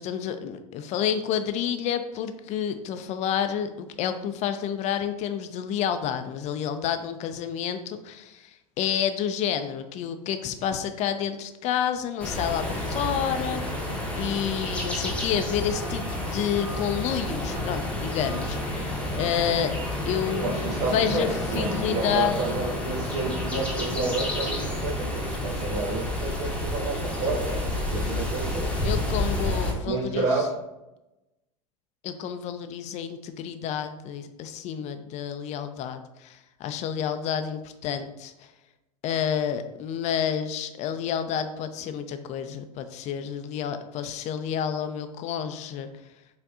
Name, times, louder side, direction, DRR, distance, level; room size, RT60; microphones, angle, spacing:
voice 1, 0.0-19.7 20.1-20.6 20.9-22.3 28.8-30.5 32.0-38.5 39.0-45.9, left 8 dB, 35° left, 9 dB, 0.4 m, -29 dB
sound 1, 12.2-29.7, left 1 dB, 5° left, 0.8 m, -30 dB
voice 2, 20.3-28.7 29.8-30.5, right 3 dB, 70° right, -4 dB, 0.8 m, -30 dB
4.7 x 2.6 x 2.5 m, 0.95 s
hypercardioid pair, 90°, 19 cm